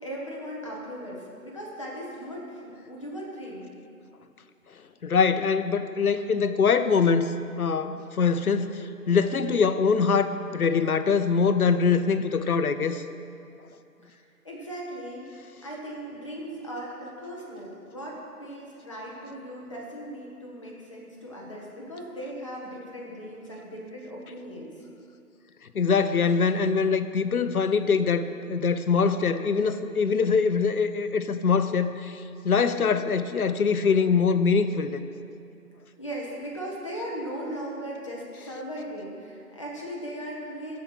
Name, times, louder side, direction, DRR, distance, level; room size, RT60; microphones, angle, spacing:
voice 1, 0.0-3.7 14.1-15.3 15.6-24.7 36.0-40.8, equal, 20° left, -4 dB, 1.0 m, -38 dB
voice 2, 5.0-7.3 7.6-13.0 25.7-35.0, left 5 dB, 70° left, 11 dB, 0.7 m, -23 dB
13.5 x 4.8 x 5.7 m, 2.5 s
figure-of-eight pair, 160°, 46 cm